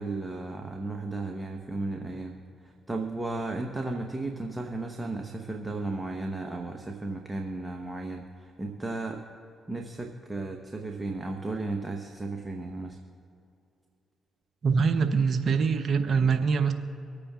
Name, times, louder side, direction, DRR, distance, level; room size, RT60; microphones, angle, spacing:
voice 1, 0.0-2.3 2.6-9.2 9.7-13.0, right 2 dB, 20° right, 2 dB, 1.2 m, -34 dB
voice 2, 14.6-16.7, right 5 dB, 55° right, 7 dB, 0.9 m, -24 dB
25.5 x 8.6 x 2.5 m, 2.6 s
hypercardioid pair, 50°, 0 cm